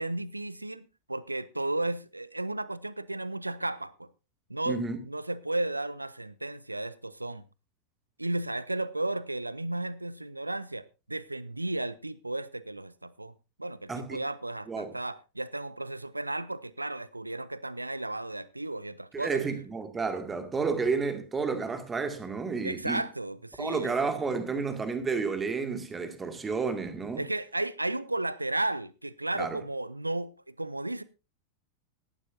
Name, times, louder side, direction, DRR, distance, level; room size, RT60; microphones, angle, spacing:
voice 1, 0.0-4.1 4.5-7.4 8.2-13.3 13.6-19.4 22.6-23.9 27.2-31.0, right 2 dB, 85° right, 0.6 m, -34 dB
voice 2, 4.7-5.0 13.9-14.2 14.7-14.9 19.1-23.0 23.6-27.2 29.4-29.6, right 4 dB, 15° right, 2.1 m, -31 dB
17.0 x 12.0 x 2.7 m
figure-of-eight pair, 90°, 0 cm